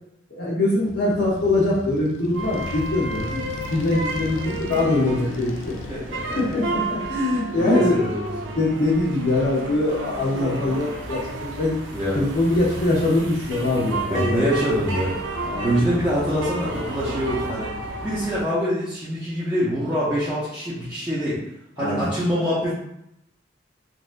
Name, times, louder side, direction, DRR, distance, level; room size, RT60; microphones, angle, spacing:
voice 1, 0.3-5.8 6.4-8.2 8.5-11.8 12.1-14.5 15.4-15.8 21.8-22.1, left 2 dB, 65° left, -7 dB, 0.8 m, -23 dB
Motorcycle, 0.8-7.5, left 3 dB, 90° left, 0.3 m, -38 dB
sound 1, 2.3-18.4, right 2 dB, 90° right, 0.6 m, -32 dB
sound 2, 3.0-13.7 14.1-14.2 15.1-15.2, left 1 dB, 25° left, 1.0 m, -45 dB
voice 2, 5.9-6.4 7.2-8.6 11.9-12.2 13.7-15.2 15.6-17.7 18.0-21.4 21.8-22.7, equal, 10° right, -12 dB, 0.7 m, -25 dB
4.0 x 2.5 x 2.5 m, 0.80 s
head